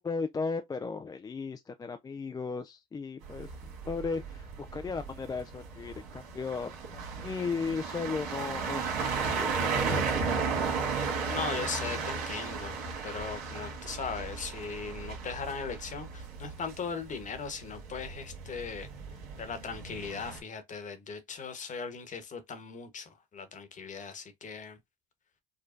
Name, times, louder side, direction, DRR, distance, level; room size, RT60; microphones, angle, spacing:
voice 1, 0.0-10.6 10.9-11.0, left 4 dB, 20° left, 0.3 m, -36 dB
sound 1, 3.2-20.4, right 5 dB, 80° right, 1.4 m, -35 dB
voice 2, 11.3-18.9 19.4-24.8, left 5 dB, 40° left, 1.1 m, -38 dB
5.0 x 2.2 x 2.5 m
supercardioid pair, 75°, 20 cm